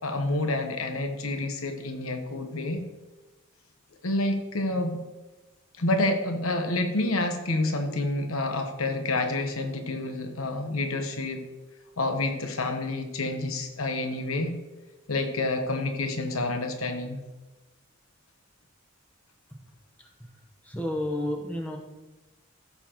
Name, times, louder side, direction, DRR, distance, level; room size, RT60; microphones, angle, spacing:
voice 1, 0.0-2.8 4.0-5.0 5.8-11.4 12.0-14.6 15.1-17.2, left 2 dB, 85° left, 6 dB, 1.1 m, -28 dB
voice 2, 20.6-21.8, left 1 dB, 10° left, 0 dB, 1.0 m, -30 dB
14.0 x 6.6 x 3.0 m, 1.1 s
head